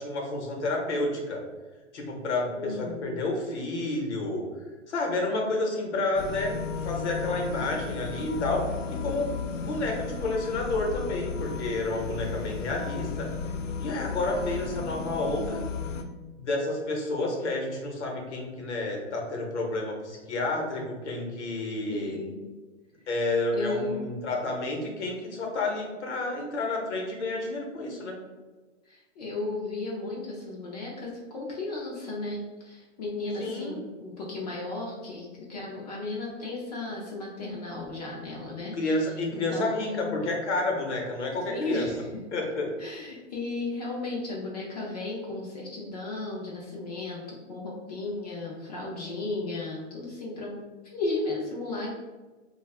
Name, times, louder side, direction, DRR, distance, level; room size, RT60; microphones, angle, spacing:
voice 1, 0.0-1.4 1.9-4.5 4.9-6.6 6.8-13.3 13.8-15.6 16.4-22.2 23.1-28.2 33.4-33.8 38.8-41.9 42.3-42.7, left 2 dB, 65° left, 1 dB, 0.9 m, -30 dB
voice 2, 2.6-3.2 7.6-8.0 21.9-22.4 23.5-24.0 28.9-40.2 41.5-42.1 42.8-50.6 50.9-51.9, left 2 dB, 35° left, -3 dB, 0.5 m, -35 dB
sound 1, 6.2-16.0, left 5 dB, 90° left, 0.5 m, -34 dB
2.4 x 2.3 x 3.3 m, 1.2 s
hypercardioid pair, 150°, 37 cm